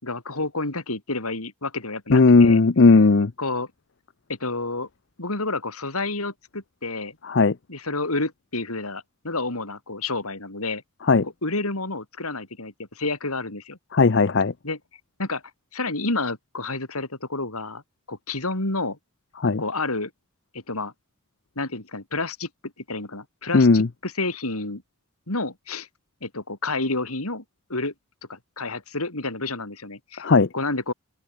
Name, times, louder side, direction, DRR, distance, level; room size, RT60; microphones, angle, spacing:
voice 1, 0.0-2.6 3.4-3.7 4.3-4.9 5.2-7.2 7.7-10.8 11.2-13.8 14.6-14.8 15.2-15.4 15.7-17.8 18.1-19.0 19.6-20.1 20.5-20.9 21.5-24.8 25.3-25.9 26.2-27.4 27.7-27.9 28.3-30.2 30.5-30.9, left 3 dB, 90° left, 4.9 m, -29 dB
voice 2, 2.1-3.3 7.2-7.5 11.1-11.3 13.9-14.5 19.4-19.6 23.5-23.9 30.2-30.5, left 3 dB, 55° left, 0.6 m, -16 dB
open air
head